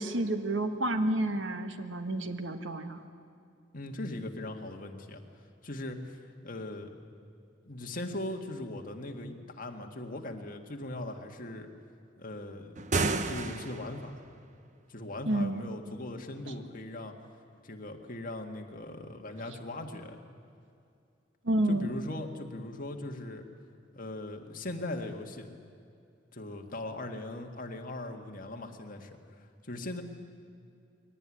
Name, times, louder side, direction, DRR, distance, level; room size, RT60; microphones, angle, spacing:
voice 1, 0.0-3.0 15.3-15.6 21.4-21.9, right 1 dB, 75° right, 7 dB, 1.5 m, -30 dB
voice 2, 3.7-5.2 5.6-7.0 7.7-11.7 12.2-12.8 13.3-14.1 14.9-17.1 17.6-20.2 21.7-23.5 23.9-25.5 26.3-30.0, left 1 dB, 45° left, 3 dB, 1.9 m, -39 dB
sound 1, 12.8-14.1, right 3 dB, 40° right, 1.0 m, -31 dB
22.5 x 17.5 x 9.9 m, 2.5 s
head